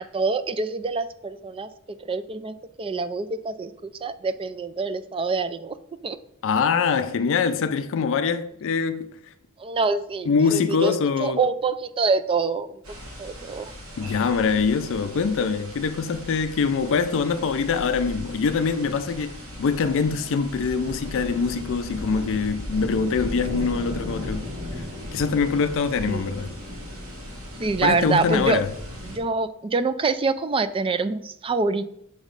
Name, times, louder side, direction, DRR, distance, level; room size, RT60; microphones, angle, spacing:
voice 1, 0.0-1.7 2.0-5.8 6.0-6.2 9.6-10.9 11.2-12.8 13.2-13.7 26.1-26.3 27.6-28.6 29.0-31.9, right 4 dB, 25° right, 0.3 m, -26 dB
voice 2, 6.4-9.1 10.3-11.4 14.0-24.5 25.1-26.5 27.8-28.7, left 5 dB, 65° left, 0.4 m, -24 dB
sound 1, 12.8-29.2, left 1 dB, 75° right, 1.8 m, -37 dB
6.4 x 3.1 x 5.1 m
head